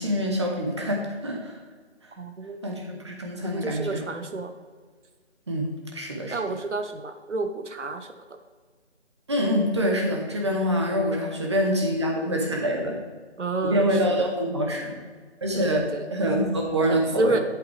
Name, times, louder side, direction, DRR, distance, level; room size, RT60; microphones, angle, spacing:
voice 1, 0.0-1.6 2.6-4.0 5.5-6.4 9.3-13.0 13.6-15.0 15.4-15.8 16.1-17.4, equal, 25° right, 0 dB, 1.0 m, -25 dB
voice 2, 2.2-2.6 3.4-4.5 6.3-8.1 13.4-13.9 14.2-14.3 15.5-16.0 16.9-17.4, right 3 dB, 85° right, 7 dB, 0.9 m, -29 dB
8.1 x 7.8 x 3.4 m, 1.5 s
figure-of-eight pair, 160°, 35 cm